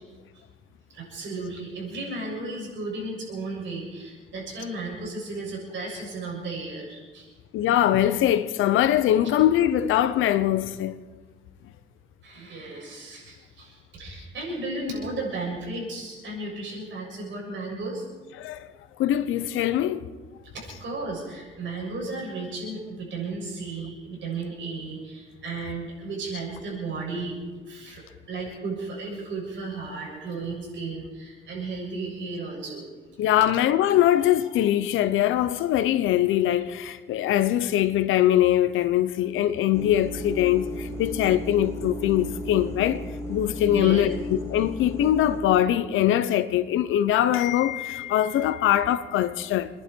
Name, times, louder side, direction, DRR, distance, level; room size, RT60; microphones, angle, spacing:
voice 1, 0.9-7.3 12.2-18.1 20.5-27.3 27.7-28.0 28.3-32.8 43.7-44.1, right 3 dB, 70° right, 7.1 m, -34 dB
voice 2, 7.5-11.0 18.4-18.7 19.0-20.0 33.2-49.7, left 12 dB, 85° left, 1.0 m, -22 dB
sound 1, 39.7-45.4, left 1 dB, 15° left, 2.8 m, -35 dB
28.0 x 11.0 x 4.7 m
cardioid pair, 90°, 20 cm